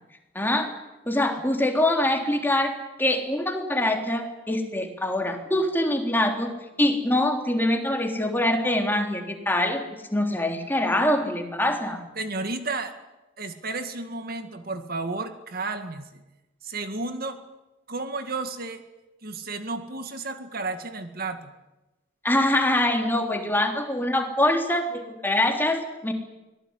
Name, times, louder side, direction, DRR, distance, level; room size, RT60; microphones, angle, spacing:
voice 1, 0.4-0.7 1.1-2.7 3.0-6.5 6.8-9.8 10.1-12.1 22.2-26.1, left 1 dB, 10° left, 3 dB, 3.5 m, -24 dB
voice 2, 12.2-12.9 13.4-16.2 16.6-17.4 17.9-18.8 19.2-21.5, right 3 dB, 55° right, 8 dB, 2.0 m, -32 dB
24.5 x 19.0 x 9.8 m, 1.0 s
head